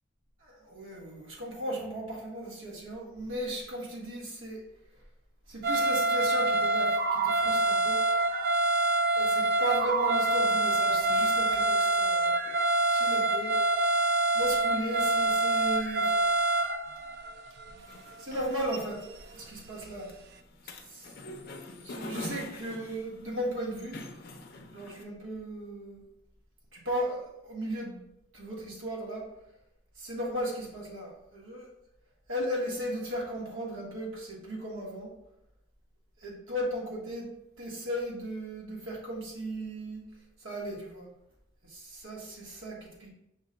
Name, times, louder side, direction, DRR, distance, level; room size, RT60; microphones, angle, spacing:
voice 1, 0.4-4.6 5.5-8.0 9.1-12.6 12.9-13.6 14.3-16.1 18.2-19.0 19.3-20.1 20.9-21.1 21.8-24.0 24.7-26.0 26.7-28.0 28.3-29.2 30.0-31.7 32.3-35.1 36.2-37.3 37.6-40.0 40.4-41.1 41.6-43.1, right 1 dB, 75° right, -3 dB, 1.4 m, -36 dB
sound 1, 5.6-19.2 19.9-20.0, right 2 dB, 55° right, 0.3 m, -26 dB
sound 2, 17.8-25.0, left 2 dB, 50° left, 0.5 m, -45 dB
5.9 x 2.2 x 3.8 m, 0.83 s
head